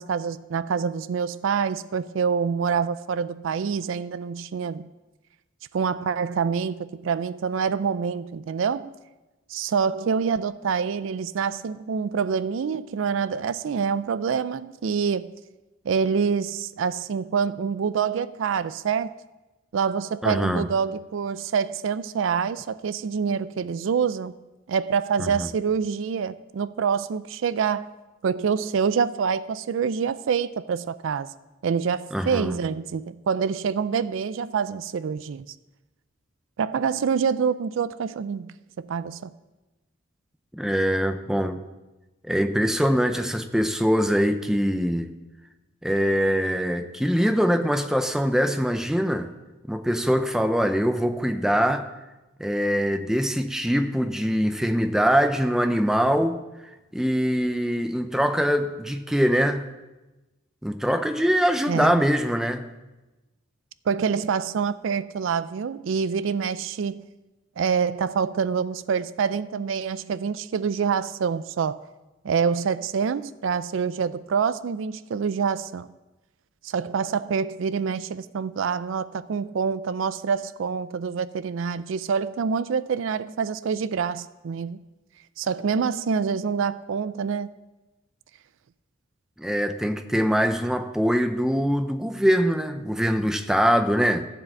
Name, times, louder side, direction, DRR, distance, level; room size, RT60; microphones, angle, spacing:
voice 1, 0.0-4.9 5.7-8.9 9.5-15.3 15.8-19.1 19.7-24.3 24.7-27.9 28.2-31.3 31.6-35.5 36.6-39.3 61.7-62.0 63.9-67.1 67.6-71.8 72.2-75.9 76.6-84.8 85.4-87.5, right 6 dB, 65° right, 0.4 m, -26 dB
voice 2, 20.2-20.7 25.2-25.5 32.1-32.5 40.5-41.6 42.2-45.1 45.8-49.3 49.7-51.9 52.4-56.4 56.9-59.7 60.6-62.7 89.4-94.3, equal, 5° right, 0.6 m, -23 dB
14.5 x 4.9 x 7.7 m
head